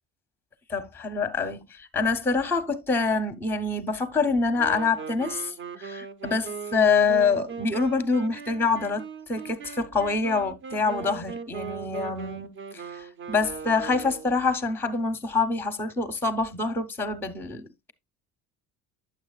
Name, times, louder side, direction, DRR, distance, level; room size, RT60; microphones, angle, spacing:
voice 1, 0.7-17.9, left 4 dB, 5° left, 0.7 m, -26 dB
Wind instrument woodwind instrument, 4.5-14.4, right 5 dB, 35° right, 0.6 m, -39 dB
9.2 x 7.3 x 2.3 m
cardioid pair, 160°, 34 cm